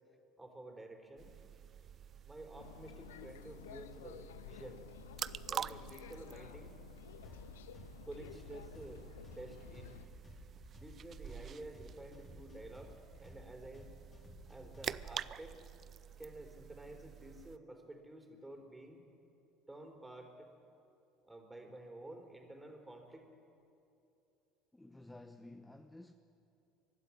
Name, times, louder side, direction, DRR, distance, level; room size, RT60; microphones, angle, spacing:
voice 1, 0.4-1.3 2.2-4.9 5.5-6.7 8.1-9.0 9.3-9.9 10.8-13.9 14.5-15.6 16.2-19.0 19.7-20.5 21.2-23.3, right 1 dB, 10° right, 4 dB, 4.1 m, -51 dB
sound 1, 1.2-17.6, right 8 dB, 45° right, 0.5 m, -48 dB
sound 2, 2.6-10.1, left 10 dB, 80° left, 0.5 m, -53 dB
sound 3, 7.2-15.2, left 3 dB, 30° left, 4.6 m, -56 dB
voice 2, 24.7-26.1, left 2 dB, 10° left, 7 dB, 1.0 m, -53 dB
23.5 x 12.5 x 9.9 m, 2.8 s
hypercardioid pair, 70°, 0 cm